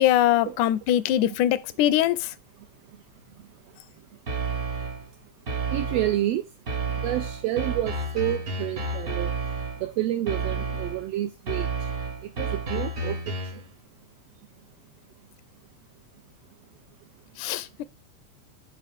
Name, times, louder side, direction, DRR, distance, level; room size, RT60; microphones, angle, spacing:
voice 1, 0.0-2.3 17.4-17.7, left 12 dB, 90° left, 2.0 m, -22 dB
sound 1, 4.3-5.1 5.5-6.3 6.7-9.9 10.3-11.1 11.5-13.7, right 3 dB, 50° right, 1.0 m, -30 dB
voice 2, 5.7-6.4 7.0-9.3 9.8-11.7 12.4-13.2, right 13 dB, 80° right, 1.4 m, -28 dB
9.0 x 3.7 x 3.5 m
omnidirectional pair, 3.4 m